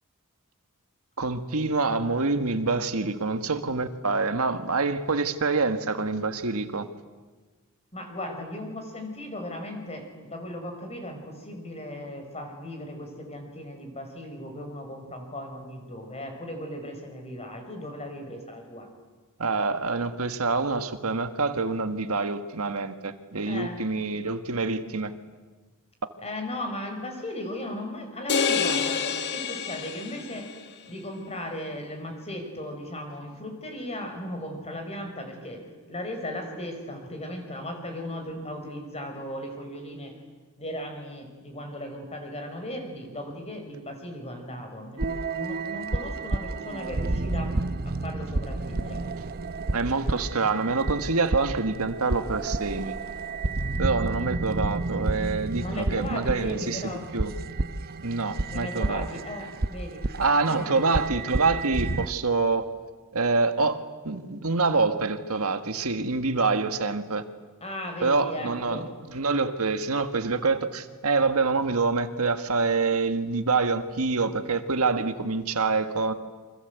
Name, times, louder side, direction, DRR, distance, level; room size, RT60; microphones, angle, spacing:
voice 1, 1.2-6.9 19.4-25.1 49.7-52.9 53.8-56.8 57.1-57.3 58.0-59.1 60.1-62.7 63.1-63.8 64.0-67.2 68.0-68.8 69.1-76.1, right 4 dB, 75° right, 8 dB, 1.6 m, -26 dB
voice 2, 7.9-18.9 23.5-23.8 26.2-29.0 29.3-30.5 30.9-35.6 35.9-40.1 40.6-47.5 47.9-49.0 54.9-55.1 55.6-57.1 58.5-60.0 60.5-60.8 67.6-68.9, left 1 dB, 30° left, 4 dB, 5.4 m, -37 dB
sound 1, 28.3-30.6, left 6 dB, 50° left, 1.7 m, -27 dB
sound 2, 45.0-62.1, right 2 dB, 45° right, 0.8 m, -31 dB
28.5 x 25.0 x 8.2 m, 1.3 s
head